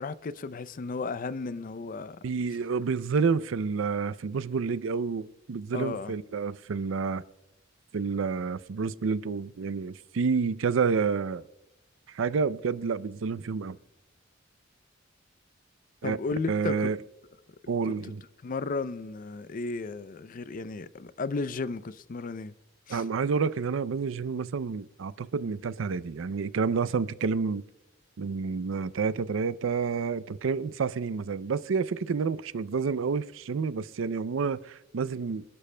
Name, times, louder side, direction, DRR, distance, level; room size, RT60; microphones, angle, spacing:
voice 1, 0.0-2.2 5.7-6.2 16.0-16.9 17.8-17.9 18.4-22.5 22.9-23.0, left 4 dB, 45° left, 0.4 m, -34 dB
voice 2, 2.2-7.2 7.9-11.4 12.1-13.8 16.0-16.2 16.5-17.0 17.7-18.2 22.9-27.6 28.2-35.4, right 5 dB, 70° right, 0.4 m, -29 dB
26.0 x 11.5 x 2.2 m
head